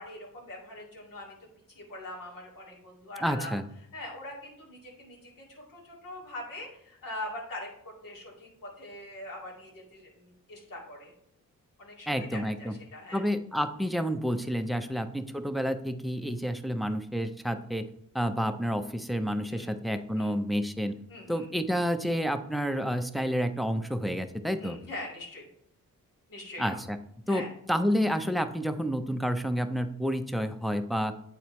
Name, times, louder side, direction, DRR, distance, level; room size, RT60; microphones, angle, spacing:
voice 1, 0.0-1.3 1.7-3.5 3.9-11.1 11.8-13.2 14.8-15.0 19.5-19.7 20.2-20.4 21.1-21.5 24.6-25.5 26.3-26.7 27.3-27.5, left 1 dB, 75° left, -3 dB, 2.4 m, -42 dB
voice 2, 3.2-3.6 12.1-12.7 13.1-17.9 18.1-21.0 21.3-24.8 26.6-27.0 27.3-31.1, equal, ahead, 8 dB, 0.5 m, -29 dB
8.1 x 4.4 x 3.1 m, 0.77 s
wide cardioid pair, 100°, 33 cm